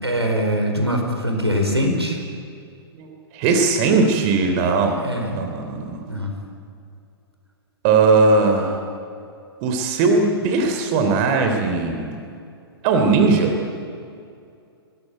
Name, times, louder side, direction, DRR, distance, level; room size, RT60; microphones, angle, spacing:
voice 1, 0.0-2.2 5.0-5.3 6.1-6.3, equal, 90° right, 3 dB, 4.8 m, -22 dB
voice 2, 2.9-5.0 5.3-6.0 7.8-8.8 9.6-12.1 12.8-13.6, right 4 dB, 35° right, 5 dB, 3.3 m, -19 dB
22.5 x 19.5 x 9.3 m, 2.5 s
figure-of-eight pair, 115°, 13 cm